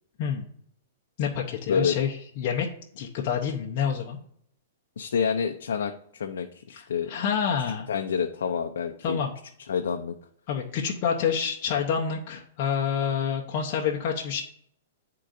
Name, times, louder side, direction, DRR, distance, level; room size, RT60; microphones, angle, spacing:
voice 1, 1.2-2.7 3.0-4.2 6.7-7.9 9.0-9.3 10.5-14.4, left 7 dB, 40° left, -1 dB, 0.8 m, -28 dB
voice 2, 5.0-7.1 7.9-9.2 9.7-10.2, left 6 dB, 90° left, 4 dB, 0.5 m, -28 dB
10.5 x 3.8 x 2.6 m, 0.65 s
hypercardioid pair, 155°, 0 cm